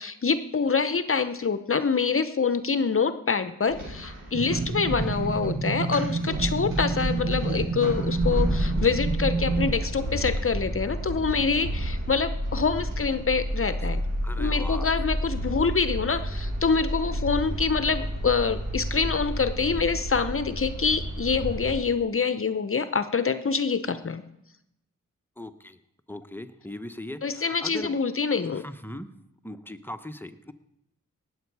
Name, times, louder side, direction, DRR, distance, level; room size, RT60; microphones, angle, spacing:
voice 1, 0.0-14.0 14.4-24.2 27.2-28.6, left 5 dB, 40° left, 12 dB, 0.8 m, -26 dB
sound 1, 3.7-21.8, equal, 80° right, 4.8 m, -31 dB
sound 2, 4.3-9.7, right 4 dB, 40° right, 1.3 m, -29 dB
voice 2, 14.2-14.9 25.4-25.8 26.1-28.0 28.5-29.1 29.4-30.5, left 1 dB, 5° left, 9 dB, 1.0 m, -39 dB
18.5 x 8.1 x 4.7 m, 0.80 s
cardioid pair, 40°, 32 cm